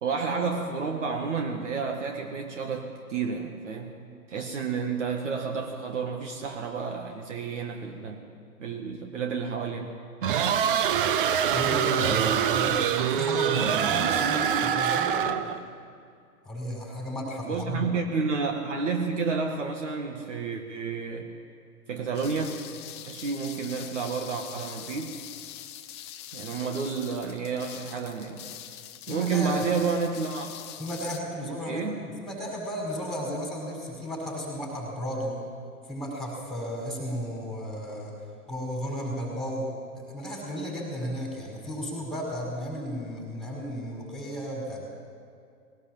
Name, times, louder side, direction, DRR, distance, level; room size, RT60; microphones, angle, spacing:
voice 1, 0.0-4.0 4.3-8.2 8.6-9.9 17.4-21.3 21.9-22.6 23.1-25.2 26.3-28.4 29.1-30.5 31.6-32.0, right 5 dB, 50° right, 4 dB, 1.8 m, -30 dB
sound 1, 10.2-15.6, right 8 dB, 35° right, 0.9 m, -24 dB
voice 2, 11.5-15.5 16.4-17.9 29.1-29.5 30.8-35.4 35.9-38.1 38.5-39.7 39.9-44.8, equal, ahead, -2 dB, 5.2 m, -34 dB
sound 2, 22.1-31.2, left 11 dB, 20° left, 0.6 m, -43 dB
20.0 x 18.0 x 7.5 m, 2.3 s
figure-of-eight pair, 125°, 46 cm